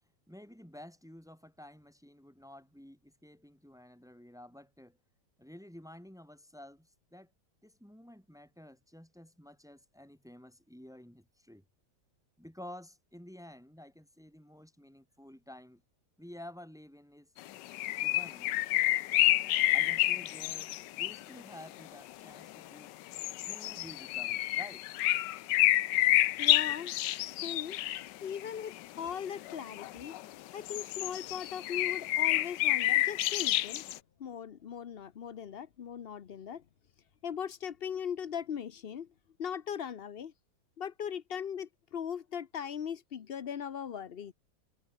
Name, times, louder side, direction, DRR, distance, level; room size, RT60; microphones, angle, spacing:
voice 1, 0.3-5.0 5.4-7.3 7.6-11.6 12.4-15.8 16.2-17.3 18.0-18.6 19.7-20.7 21.0-22.9 23.5-24.8, left 1 dB, ahead, 3.9 m, -51 dB
sound 1, 17.4-21.4 21.8-21.9 22.4-22.6 23.1-30.3 30.6-34.0, left 15 dB, 75° left, 1.3 m, -29 dB
voice 2, 26.4-26.9 27.4-27.8 28.2-30.2 30.5-33.9 34.2-36.6 37.2-39.1 39.4-40.3 40.8-44.3, left 8 dB, 55° left, 0.7 m, -39 dB
omnidirectional pair, 1.9 m